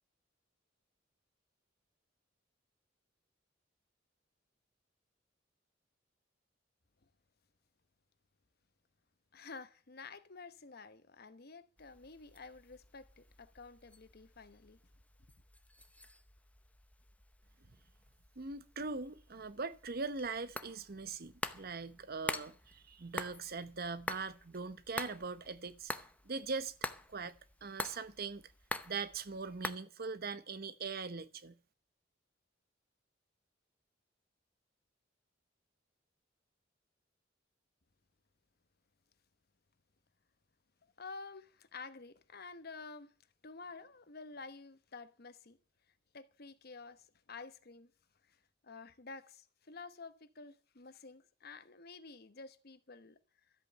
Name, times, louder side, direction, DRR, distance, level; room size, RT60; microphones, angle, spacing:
voice 1, 9.3-14.8 41.0-43.1 43.4-45.6 46.1-47.9 48.3-48.4 48.6-53.2, left 4 dB, 55° left, 1.1 m, -51 dB
sound 1, 11.8-29.7, left 2 dB, 10° left, 0.8 m, -47 dB
voice 2, 18.4-25.9 26.2-26.7 27.1-27.3 27.6-28.4 28.9-31.5, right 4 dB, 55° right, 1.0 m, -41 dB
13.5 x 8.5 x 8.0 m
head